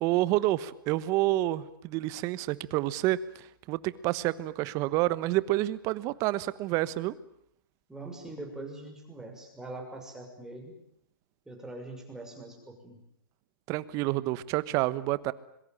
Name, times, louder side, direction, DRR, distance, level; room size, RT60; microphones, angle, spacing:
voice 1, 0.0-7.1 13.7-15.3, right 16 dB, 30° right, 17 dB, 1.2 m, -28 dB
voice 2, 7.9-10.7 11.5-13.0, right 2 dB, 5° right, 2 dB, 6.3 m, -42 dB
25.5 x 23.0 x 9.1 m, 0.72 s
hypercardioid pair, 140°, 12 cm